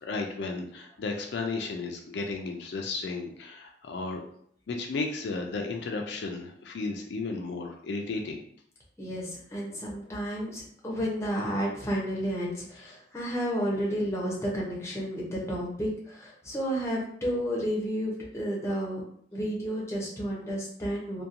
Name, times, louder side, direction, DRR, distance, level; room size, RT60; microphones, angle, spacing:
voice 1, 0.0-4.2 4.7-8.4, left 3 dB, 70° left, 2 dB, 0.3 m, -34 dB
voice 2, 9.0-19.0 19.3-21.2, equal, 15° left, -4 dB, 0.6 m, -31 dB
2.7 x 2.1 x 2.4 m, 0.64 s
head